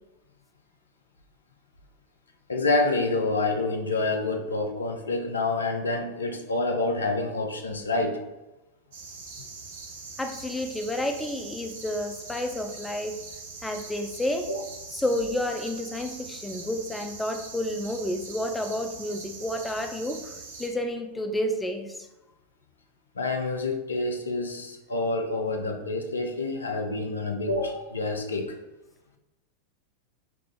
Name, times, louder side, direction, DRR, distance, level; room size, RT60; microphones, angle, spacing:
voice 1, 2.5-8.2 14.5-14.6 23.2-28.5, left 2 dB, 75° left, 4 dB, 0.4 m, -27 dB
sound 1, 8.9-20.7, right 4 dB, 60° right, 0.6 m, -42 dB
voice 2, 10.2-13.2 13.6-14.5 14.9-22.1, left 1 dB, 10° left, 6 dB, 0.3 m, -30 dB
3.6 x 2.4 x 3.1 m, 1.0 s
figure-of-eight pair, 90°, 0 cm